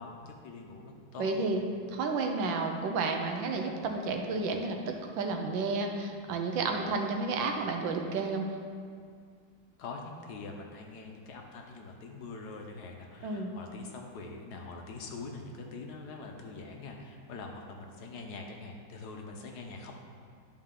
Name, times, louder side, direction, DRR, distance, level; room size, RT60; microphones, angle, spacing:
voice 1, 0.0-1.7 9.8-19.9, left 3 dB, 65° left, 2 dB, 1.2 m, -44 dB
voice 2, 1.2-1.6 1.9-8.5 13.2-13.5, right 3 dB, 85° right, 3 dB, 1.5 m, -31 dB
11.5 x 4.4 x 3.7 m, 2.1 s
omnidirectional pair, 2.0 m